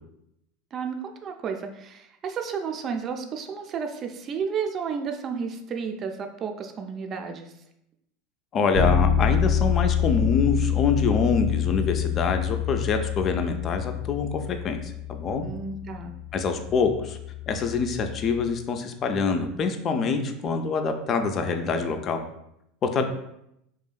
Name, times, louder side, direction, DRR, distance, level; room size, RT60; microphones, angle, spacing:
voice 1, 0.7-7.5 15.4-16.2 23.0-23.1, right 6 dB, 40° right, 5 dB, 0.3 m, -32 dB
voice 2, 8.5-15.4 16.3-17.2 17.5-22.2 22.8-23.0, left 5 dB, 40° left, 6 dB, 0.3 m, -25 dB
Bass guitar, 8.7-18.5, left 8 dB, 85° right, 0.5 m, -27 dB
2.7 x 2.4 x 2.2 m, 0.79 s
hypercardioid pair, 95°, 0 cm